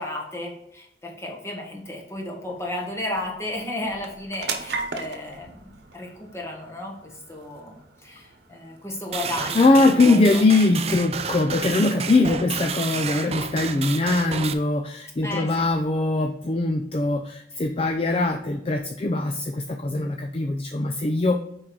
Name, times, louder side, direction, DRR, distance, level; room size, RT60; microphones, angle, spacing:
voice 1, 0.0-5.6 5.9-9.7 10.1-10.4 15.2-15.5, left 1 dB, 15° left, 0 dB, 1.5 m, -33 dB
sound 1, 1.3-15.9, right 4 dB, 70° right, 1.0 m, -41 dB
robot rhythm, 9.1-14.5, right 6 dB, 35° right, 0.5 m, -31 dB
voice 2, 9.5-21.4, left 2 dB, 35° left, 5 dB, 0.4 m, -21 dB
6.1 x 4.7 x 4.7 m, 0.76 s
head